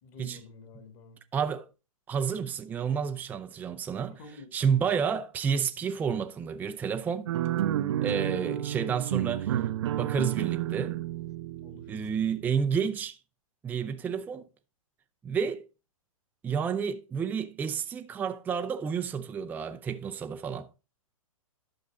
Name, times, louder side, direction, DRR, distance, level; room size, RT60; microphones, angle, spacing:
voice 1, 0.0-1.2 4.0-4.5 4.8-4.9 11.6-11.8, left 4 dB, 35° left, 2.4 m, -49 dB
voice 2, 1.3-1.7 2.1-4.2 4.5-7.3 8.0-9.6 9.9-11.0 11.9-13.2 13.6-14.5 15.2-15.7 16.4-20.7, right 7 dB, 10° right, 0.5 m, -30 dB
sound 1, 7.3-12.6, right 12 dB, 55° right, 0.7 m, -31 dB
11.5 x 6.2 x 3.7 m
figure-of-eight pair, 115°, 18 cm